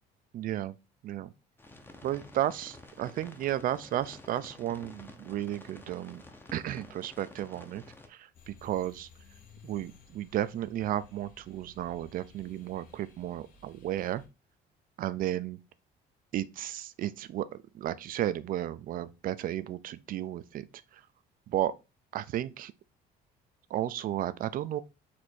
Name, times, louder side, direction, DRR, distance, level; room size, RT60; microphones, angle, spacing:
voice 1, 0.3-0.7 1.0-1.3 2.0-6.2 6.5-7.8 8.1-9.1 9.6-14.2 15.0-15.6 16.3-20.7 20.9-21.0 21.5-21.7 22.1-22.7 23.7-24.8, right 12 dB, 55° right, 0.4 m, -33 dB
sound 1, 1.6-8.1, left 2 dB, 10° left, 0.7 m, -51 dB
sound 2, 8.3-14.3, left 3 dB, 55° left, 1.1 m, -57 dB
4.3 x 2.6 x 4.4 m
cardioid pair, 110°, 17 cm